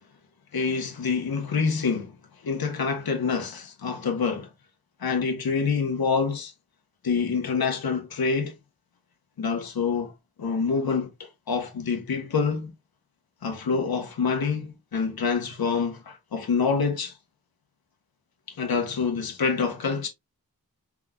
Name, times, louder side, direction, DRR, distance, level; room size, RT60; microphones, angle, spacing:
voice 1, 0.5-2.1 2.4-4.5 5.0-6.5 7.0-8.5 9.4-10.1 10.4-12.7 13.4-17.1 18.6-20.1, left 5 dB, 70° left, 1.1 m, -26 dB
4.9 x 3.7 x 2.2 m
wide cardioid pair, 90°, 37 cm